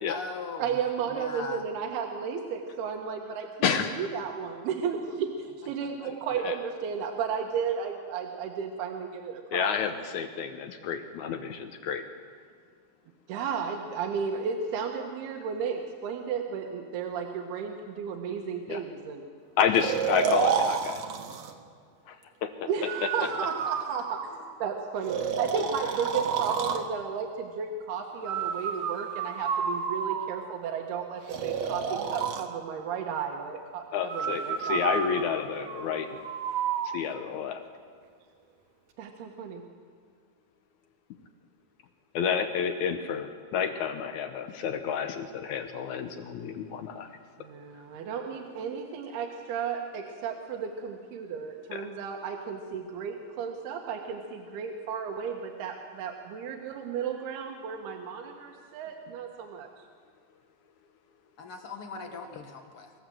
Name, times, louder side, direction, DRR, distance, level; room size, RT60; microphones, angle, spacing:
voice 1, 0.1-0.8 1.1-1.7 5.8-6.1 23.2-23.4 61.4-62.9, left 4 dB, 50° left, 4 dB, 1.8 m, -39 dB
voice 2, 0.6-10.0 13.3-19.3 22.7-24.0 24.6-33.8 34.1-34.9 39.0-39.6 47.4-59.7, right 6 dB, 80° right, 2 dB, 3.2 m, -34 dB
voice 3, 3.6-4.0 6.4-6.6 9.5-12.0 18.7-18.8 19.6-21.0 22.1-22.2 22.4-22.7 25.6-25.7 33.9-36.1 36.9-37.6 42.1-47.1 51.7-51.8, left 7 dB, 75° left, 7 dB, 1.8 m, -30 dB
Breathing, 19.7-21.5 22.9-24.5 25.1-26.9 28.2-30.5 31.3-32.5 34.1-36.9, right 7 dB, 60° right, 2.2 m, -30 dB
24.5 x 14.5 x 7.8 m, 2.1 s
omnidirectional pair, 4.5 m